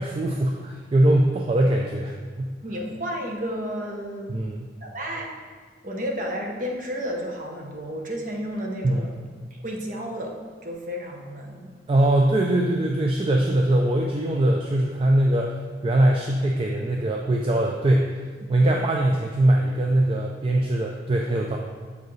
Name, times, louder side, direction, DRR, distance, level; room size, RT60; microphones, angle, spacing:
voice 1, 0.0-2.5 4.3-4.7 8.8-9.0 11.9-15.6 15.8-18.1 18.5-21.6, right 1 dB, 30° right, 0 dB, 0.3 m, -22 dB
voice 2, 2.6-4.4 4.8-5.3 5.8-9.1 9.5-11.6 18.4-18.8, equal, 45° right, 0 dB, 0.8 m, -32 dB
7.0 x 4.6 x 3.1 m, 1.5 s
head